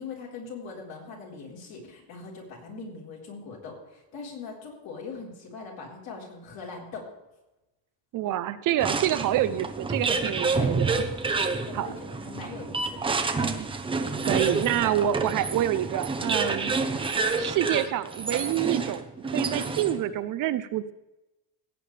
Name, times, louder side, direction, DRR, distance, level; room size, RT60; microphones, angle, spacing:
voice 1, 0.0-7.1 10.5-10.8 11.6-13.2, left 4 dB, 55° left, -2 dB, 4.0 m, -41 dB
voice 2, 8.1-11.0 11.7-11.9 13.6-13.7 14.2-16.8 17.4-19.0 19.3-20.9, right 12 dB, 50° right, 12 dB, 0.6 m, -27 dB
sound 1, 8.8-20.1, right 3 dB, 10° right, 0.7 m, -28 dB
17.0 x 8.4 x 3.3 m, 0.99 s
cardioid pair, 150°, 43 cm